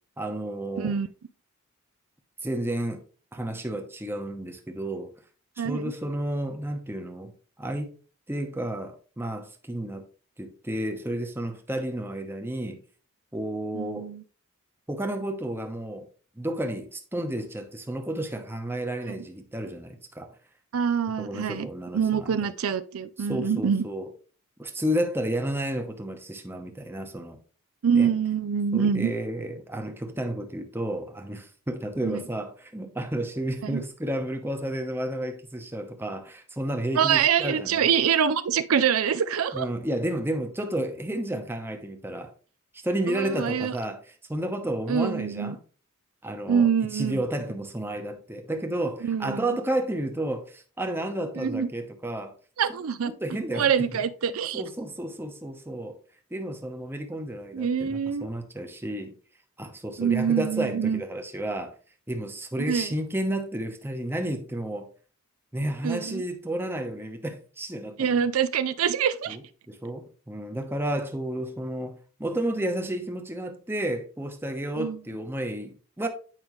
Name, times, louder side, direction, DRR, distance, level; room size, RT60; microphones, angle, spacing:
voice 1, 0.2-1.0 2.4-3.0 3.3-5.1 5.6-7.3 7.6-7.9 8.3-10.0 10.4-12.8 13.3-14.1 14.9-16.1 16.4-20.3 21.2-22.5 23.2-24.1 24.6-27.4 27.9-28.1 28.7-37.9 39.5-42.3 42.7-45.6 46.2-52.3 53.0-53.7 53.9-54.0 54.5-56.0 56.3-59.1 59.6-61.7 62.1-64.9 65.5-68.2 69.3-76.1, right 1 dB, 10° right, 0.9 m, -31 dB
voice 2, 0.8-1.1 5.6-5.9 13.7-14.2 20.7-21.7 21.9-23.9 27.8-29.1 32.0-32.2 33.6-33.8 37.0-39.7 43.1-43.7 44.9-45.5 46.5-47.2 49.0-49.5 51.4-51.7 52.6-53.1 53.5-54.6 57.5-58.3 60.0-61.0 62.7-62.9 65.8-66.2 68.0-69.4 74.8-75.0, right 7 dB, 75° right, 0.5 m, -25 dB
9.0 x 5.1 x 3.1 m
head